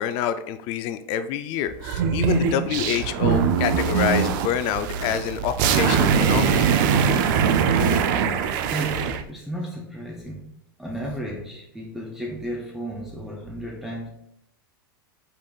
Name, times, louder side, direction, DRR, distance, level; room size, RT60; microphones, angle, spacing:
voice 1, 0.0-6.7 7.7-8.0, left 9 dB, 45° left, 0.4 m, -27 dB
sound 1, 1.8-9.2, right 6 dB, 55° right, 0.5 m, -22 dB
voice 2, 8.4-10.5 10.8-14.1, right 1 dB, 5° right, 0.6 m, -34 dB
5.3 x 3.7 x 2.3 m
hypercardioid pair, 125°, 12 cm